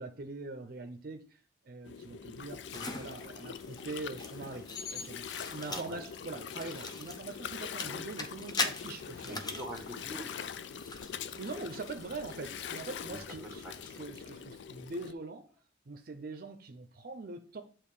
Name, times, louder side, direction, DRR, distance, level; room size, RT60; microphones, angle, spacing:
voice 1, 0.0-9.4 11.4-15.5 15.9-17.6, right 3 dB, 55° right, 0.6 m, -43 dB
Gurgling, 1.8-15.1, left 7 dB, 85° left, 0.4 m, -43 dB
sound 1, 2.7-14.0, left 3 dB, 25° left, 0.7 m, -42 dB
voice 2, 5.7-6.0 7.9-8.1 9.2-10.9 13.0-13.8, equal, 5° right, 1.4 m, -45 dB
8.7 x 3.0 x 4.8 m
head